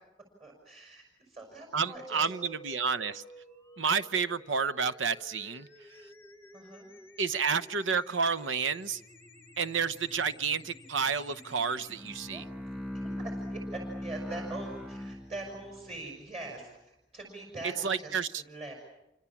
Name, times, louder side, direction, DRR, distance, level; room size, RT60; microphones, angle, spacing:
voice 1, 0.4-2.3 6.5-6.9 12.3-12.4 12.9-18.7, right 2 dB, 35° right, 5.9 m, -43 dB
voice 2, 1.7-3.2 3.8-5.7 7.2-9.0 9.6-12.4 17.8-18.4, right 5 dB, 90° right, 0.9 m, -30 dB
sound 1, 1.9-11.9, equal, 10° left, 1.0 m, -53 dB
sound 2, 8.4-16.0, left 1 dB, 65° right, 5.8 m, -59 dB
Bowed string instrument, 11.8-15.9, left 1 dB, 5° right, 2.1 m, -39 dB
27.5 x 25.5 x 7.3 m
head